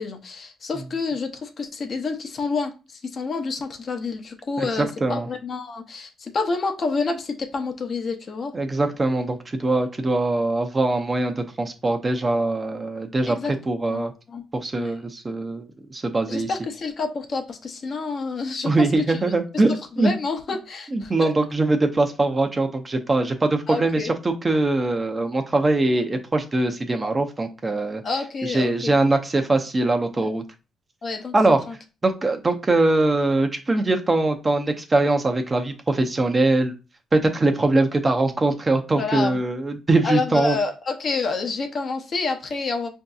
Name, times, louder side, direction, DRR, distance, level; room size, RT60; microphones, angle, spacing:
voice 1, 0.0-8.5 13.3-13.5 13.9-14.4 14.7-14.9 16.3-19.3 20.0-21.3 23.7-24.1 28.0-29.0 30.2-30.3 31.0-31.3 31.7-31.8 38.9-39.4 40.0-42.9, left 4 dB, 50° left, 4 dB, 0.7 m, -28 dB
voice 2, 8.5-13.4 13.7-14.1 14.5-16.5 18.6-20.1 20.9-28.0 28.4-30.4 31.3-31.6 32.0-36.7 37.1-40.6, right 2 dB, 25° right, 5 dB, 0.6 m, -22 dB
5.0 x 2.7 x 2.3 m, 0.31 s
cardioid pair, 90°, 0 cm